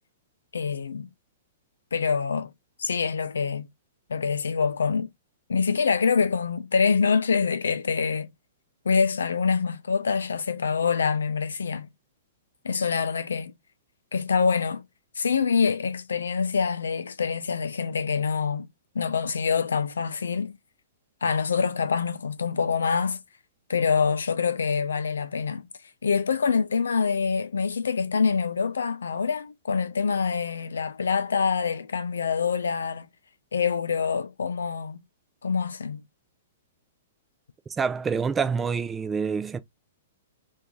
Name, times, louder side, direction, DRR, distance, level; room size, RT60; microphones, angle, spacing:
voice 1, 0.5-1.1 1.9-2.5 2.8-3.7 4.1-5.1 5.5-8.3 8.8-11.9 12.6-13.5 14.1-14.8 15.2-18.7 18.9-20.6 21.2-23.2 23.7-25.7 26.0-33.1 33.5-35.0 35.4-36.0, left 5 dB, 75° left, 0.4 m, -25 dB
voice 2, 37.8-39.6, right 5 dB, 15° right, 0.4 m, -26 dB
3.0 x 2.6 x 3.6 m
figure-of-eight pair, 110°, 0 cm